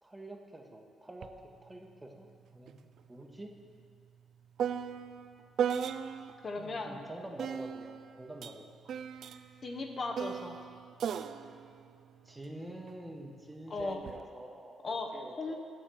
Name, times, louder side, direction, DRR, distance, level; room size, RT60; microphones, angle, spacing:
voice 1, 0.0-2.3 2.5-3.5 6.6-8.7 12.2-15.6, right 1 dB, 15° right, 3 dB, 0.9 m, -47 dB
sound 1, 1.2-1.4 1.7-6.5 7.4-12.9 13.8-14.2, right 8 dB, 65° right, 0.3 m, -38 dB
voice 2, 6.4-7.0 9.6-10.6 13.7-14.0 14.8-15.1 15.4-15.6, left 3 dB, 40° left, 3 dB, 0.8 m, -36 dB
7.1 x 5.8 x 7.6 m, 2.1 s
cardioid pair, 90°, 0 cm